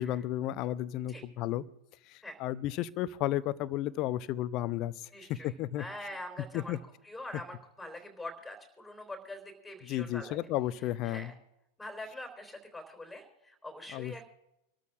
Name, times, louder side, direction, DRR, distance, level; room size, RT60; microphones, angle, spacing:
voice 1, 0.0-1.6 2.1-4.9 5.4-5.8 6.5-6.8 9.8-11.3 13.9-14.2, left 13 dB, 40° left, 16 dB, 0.7 m, -33 dB
voice 2, 5.1-6.8 7.0-10.4 11.0-11.3 11.8-14.2, left 1 dB, ahead, 3 dB, 3.7 m, -44 dB
26.5 x 13.5 x 2.5 m, 0.86 s
figure-of-eight pair, 90°, 0 cm